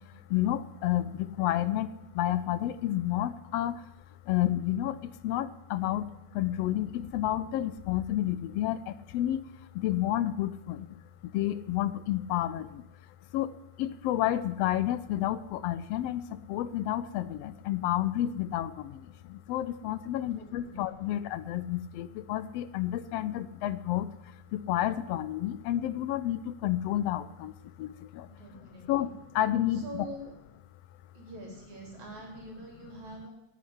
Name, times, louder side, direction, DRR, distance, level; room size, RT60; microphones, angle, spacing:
voice 1, 0.3-1.9 2.2-3.8 4.3-4.9 5.2-6.0 6.3-9.4 9.8-10.8 11.3-12.7 13.3-13.5 13.8-16.2 16.5-18.7 19.5-24.1 24.5-27.5 27.8-28.3 28.9-30.1, left 13 dB, 80° left, 14 dB, 1.4 m, -30 dB
voice 2, 20.2-20.9 28.3-29.1 29.7-30.3 31.1-33.3, right 1 dB, 70° right, -1 dB, 4.7 m, -45 dB
9.6 x 9.2 x 9.8 m, 0.87 s
omnidirectional pair, 3.4 m